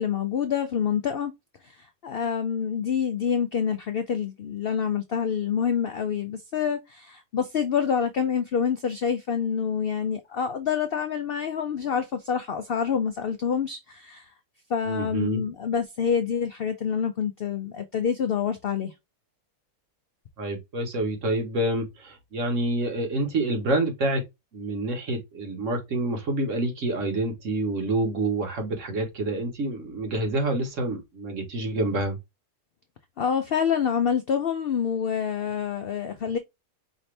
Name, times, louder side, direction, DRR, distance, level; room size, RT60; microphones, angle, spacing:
voice 1, 0.0-1.3 1.6-14.3 14.7-18.9 33.2-36.4, left 7 dB, 75° left, 0.5 m, -27 dB
voice 2, 14.8-15.4 20.4-24.2 24.5-32.2, right 2 dB, 55° right, 1.5 m, -27 dB
5.0 x 2.7 x 3.2 m
omnidirectional pair, 1.7 m